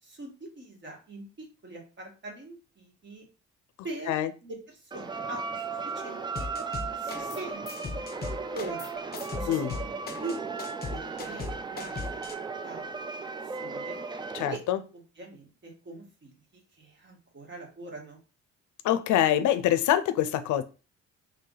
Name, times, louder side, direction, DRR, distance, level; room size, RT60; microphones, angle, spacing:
voice 1, 0.0-3.3 3.8-6.2 6.6-8.9 9.3-10.5 10.9-12.3 12.6-12.9 13.2-14.0 14.5-14.6 14.9-18.2, right 2 dB, 40° right, 1.7 m, -43 dB
sound 1, 4.9-14.6, right 4 dB, 15° right, 0.3 m, -36 dB
sound 2, 6.3-7.4 7.7-12.3, left 4 dB, 30° left, 0.6 m, -38 dB
voice 2, 14.3-14.8 18.8-20.6, left 11 dB, 80° left, 0.5 m, -25 dB
3.4 x 2.8 x 3.8 m
cardioid pair, 90°, 30 cm